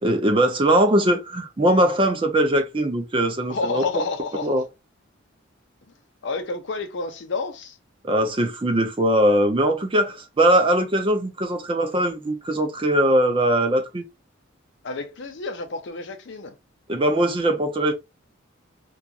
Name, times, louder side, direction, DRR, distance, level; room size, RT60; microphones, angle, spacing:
voice 1, 0.0-3.8 4.4-4.6 8.0-14.0 16.9-17.9, right 1 dB, 25° right, 0.5 m, -21 dB
voice 2, 3.5-4.6 5.9-6.0 6.2-7.8 14.8-16.6, left 3 dB, 60° left, 0.5 m, -29 dB
2.8 x 2.3 x 2.4 m
head